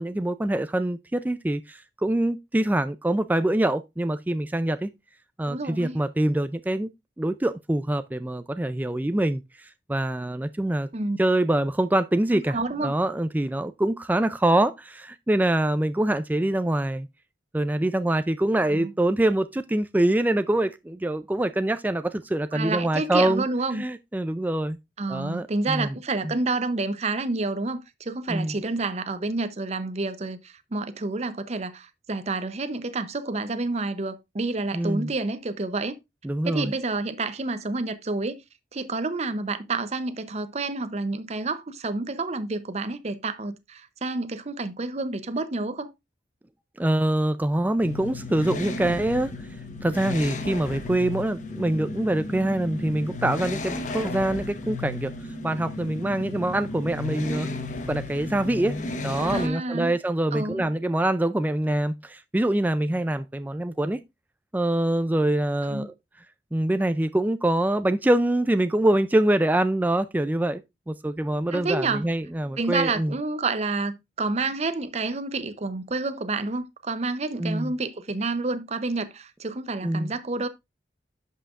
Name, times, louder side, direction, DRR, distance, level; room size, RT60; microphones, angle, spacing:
voice 1, 0.0-4.9 5.4-6.9 7.2-10.9 11.2-17.1 17.5-23.4 23.7-24.8 25.1-26.0 26.2-26.3 28.3-28.5 34.7-35.1 36.2-36.7 46.8-49.3 49.8-55.1 55.4-57.5 57.9-58.8 59.0-64.0 64.5-65.9 66.5-70.6 70.9-73.1 77.4-77.7 79.8-80.1, right 1 dB, 10° right, 0.3 m, -25 dB
voice 2, 5.5-6.0 10.9-11.2 12.3-12.9 18.7-18.9 22.5-23.8 25.0-36.0 36.4-38.4 38.7-45.9 59.2-59.9 60.3-60.7 65.6-65.9 71.5-72.1 72.6-80.5, right 3 dB, 40° right, 0.7 m, -29 dB
sound 1, 47.8-59.5, left 2 dB, 45° left, 1.1 m, -34 dB
11.0 x 5.7 x 2.4 m
head